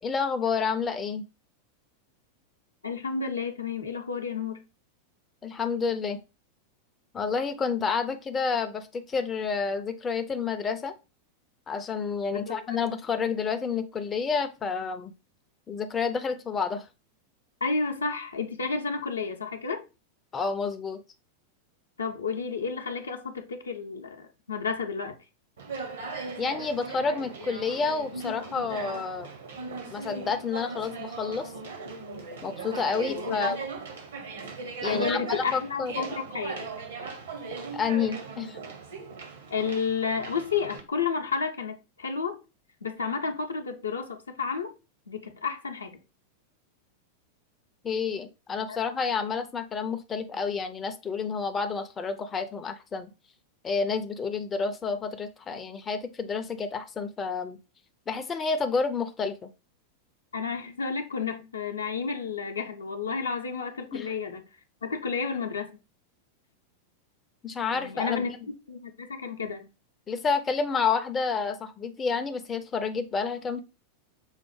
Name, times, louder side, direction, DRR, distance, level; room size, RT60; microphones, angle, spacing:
voice 1, 0.0-1.2 5.4-6.2 7.1-10.9 11.7-15.1 15.7-16.9 20.3-21.0 26.4-29.3 29.9-31.5 32.4-33.6 34.8-35.9 37.7-38.6 47.8-53.1 53.6-57.6 58.1-59.4 63.9-64.1 67.4-68.2 70.1-73.6, left 5 dB, 20° left, 0.4 m, -29 dB
voice 2, 2.8-4.6 12.3-12.8 17.6-19.8 22.0-25.1 33.3-33.5 34.8-36.7 39.5-42.4 42.8-44.7 45.1-46.0 48.7-48.8 60.3-64.4 64.8-65.8 67.7-68.3 68.7-69.7, left 5 dB, 75° left, 0.5 m, -31 dB
Conversation, 25.6-40.8, right 4 dB, 65° right, 0.8 m, -38 dB
5.5 x 2.0 x 3.1 m
figure-of-eight pair, 90°, 0 cm